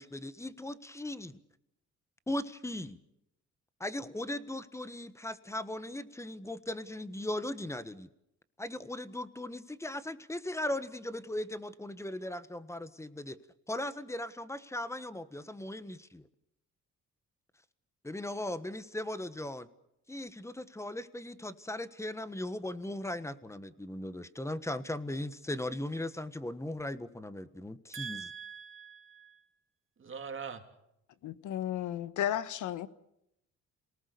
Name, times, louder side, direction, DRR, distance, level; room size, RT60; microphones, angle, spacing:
voice 1, 0.0-1.4 2.3-3.0 3.8-8.1 8.6-13.4 13.7-16.3 18.0-19.7 20.1-28.3, left 1 dB, 10° left, 13 dB, 1.4 m, -38 dB
voice 2, 27.9-29.4 30.0-30.6, right 6 dB, 40° right, 5 dB, 3.1 m, -42 dB
voice 3, 31.2-32.9, left 11 dB, 75° left, 14 dB, 1.3 m, -33 dB
27.5 x 19.0 x 6.9 m, 0.81 s
cardioid pair, 90°, 30 cm